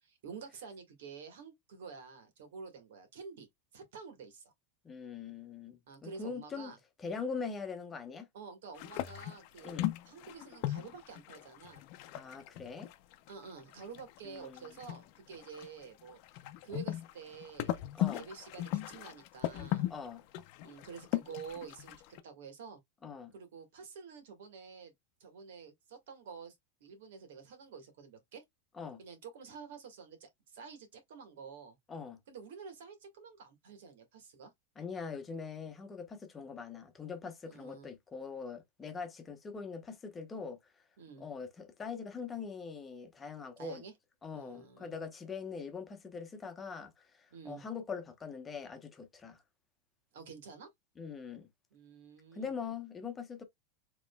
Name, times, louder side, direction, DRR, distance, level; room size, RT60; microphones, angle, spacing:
voice 1, 0.0-3.5 3.7-4.5 5.9-6.8 8.3-9.8 10.0-11.8 13.3-16.2 16.6-17.8 18.1-19.9 20.6-22.0 22.2-22.8 23.3-24.9 25.2-26.5 26.8-28.4 29.0-31.8 32.3-34.5 37.5-37.9 41.0-41.3 43.6-43.9 44.3-44.9 47.3-47.6 50.1-50.7 51.7-52.7, right 5 dB, 80° right, 1.7 m, -49 dB
voice 2, 4.8-6.7 7.0-8.3 9.6-9.9 12.1-12.9 14.2-14.7 17.9-18.3 19.9-20.2 23.0-23.3 28.7-29.0 31.9-32.2 34.8-40.6 41.2-43.8 44.2-49.4 51.0-51.5 52.3-53.4, left 5 dB, 20° left, 0.9 m, -42 dB
sound 1, 8.7-13.3 13.6-15.8 16.1-22.2, left 14 dB, 55° left, 0.6 m, -37 dB
5.1 x 3.1 x 2.3 m
supercardioid pair, 135°, 0 cm